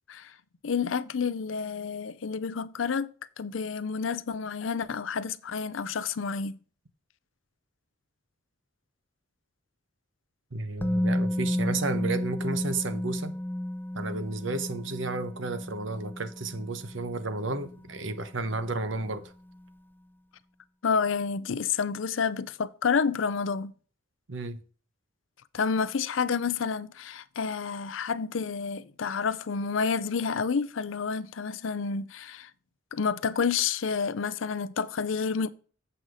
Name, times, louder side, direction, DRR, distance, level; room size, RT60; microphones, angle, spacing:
voice 1, 0.6-3.1 3.4-6.6 20.8-23.7 25.5-32.5 32.9-35.5, left 5 dB, 85° left, 0.6 m, -29 dB
voice 2, 10.5-13.4 13.9-19.3 24.3-24.6, right 3 dB, 75° right, 1.0 m, -32 dB
Musical instrument, 10.8-18.7 19.0-19.2, left 1 dB, 10° left, 0.4 m, -32 dB
7.8 x 5.7 x 4.9 m
head